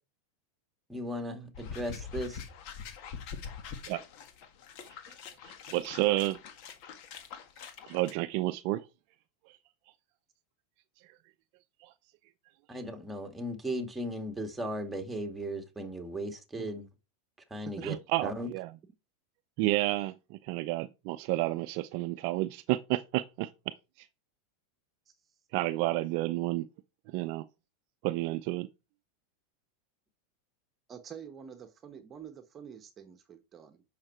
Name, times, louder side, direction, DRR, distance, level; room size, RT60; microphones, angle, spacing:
voice 1, 0.9-2.4 12.7-16.9 17.5-18.0 18.2-18.5, equal, 5° right, 2.0 m, -36 dB
sound 1, 1.5-8.1, left 7 dB, 55° left, 1.8 m, -44 dB
voice 2, 5.7-6.4 7.9-8.8 11.8-11.9 17.8-18.7 19.6-23.5 25.5-26.7 27.1-27.4 28.0-28.7, right 17 dB, 55° right, 0.5 m, -30 dB
voice 3, 30.9-33.8, right 7 dB, 30° right, 1.1 m, -47 dB
8.7 x 5.9 x 4.4 m
hypercardioid pair, 110°, 0 cm